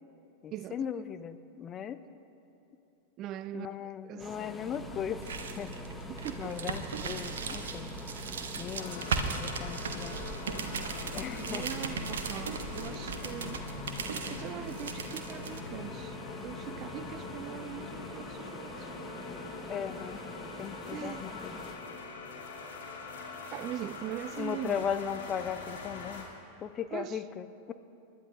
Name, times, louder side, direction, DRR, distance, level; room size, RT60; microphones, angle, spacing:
voice 1, 0.4-2.0 3.5-5.7 6.4-7.9 8.6-10.2 11.1-11.7 19.7-20.2 20.6-21.5 24.4-26.3 26.6-27.7, left 8 dB, 25° left, 0.5 m, -37 dB
voice 2, 3.2-4.5 6.1-6.7 11.4-13.7 14.3-16.2 16.4-18.9 20.9-21.3 23.5-24.9 26.9-27.2, right 13 dB, 35° right, 0.3 m, -41 dB
sound 1, 4.2-21.8, left 1 dB, 5° left, 0.9 m, -45 dB
sound 2, 4.7-15.6, right 5 dB, 65° right, 0.9 m, -37 dB
sound 3, 8.8-26.2, left 4 dB, 60° left, 2.7 m, -43 dB
28.5 x 12.0 x 2.5 m
figure-of-eight pair, 90°, 0 cm